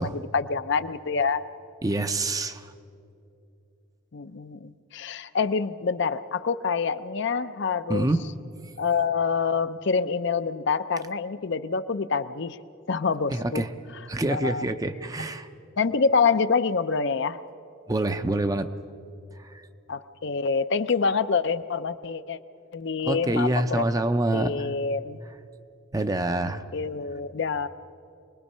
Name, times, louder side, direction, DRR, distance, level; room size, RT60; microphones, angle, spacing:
voice 1, 0.0-1.4 4.1-8.1 8.8-12.6 12.9-13.6 14.3-14.7 15.8-17.4 19.9-22.4 22.7-23.9 24.3-25.2 26.7-27.7, left 5 dB, 55° left, 12 dB, 0.5 m, -26 dB
voice 2, 1.8-2.7 7.9-8.2 13.3-13.7 14.1-15.5 17.9-18.7 19.4-19.6 23.0-24.7 25.9-26.6, right 2 dB, 15° right, 10 dB, 0.5 m, -26 dB
24.5 x 20.0 x 5.5 m, 2.7 s
head